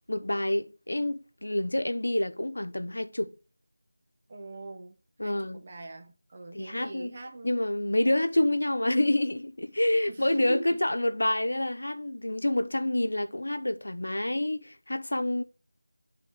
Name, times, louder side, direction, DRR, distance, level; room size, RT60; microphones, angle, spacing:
voice 1, 0.1-3.3 5.2-5.6 6.5-7.1 7.4-15.4, left 1 dB, 80° left, 1.0 m, -28 dB
voice 2, 4.3-4.9 5.2-7.6 10.1-10.8, right 2 dB, 25° right, 1.0 m, -42 dB
10.5 x 3.9 x 4.8 m
figure-of-eight pair, 175°, 0 cm